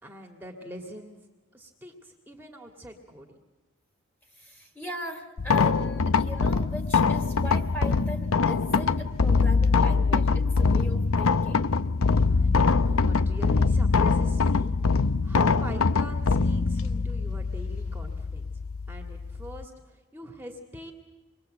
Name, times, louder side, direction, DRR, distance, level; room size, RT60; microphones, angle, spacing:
voice 1, 0.0-1.2 1.5-3.4 12.3-14.7 15.0-18.5 18.9-20.9, equal, 10° right, 1 dB, 2.1 m, -43 dB
voice 2, 4.4-11.7, equal, 10° left, 5 dB, 2.6 m, -39 dB
sound 1, 5.4-19.6, left 4 dB, 85° left, 0.7 m, -23 dB
28.0 x 22.5 x 7.8 m, 1.2 s
head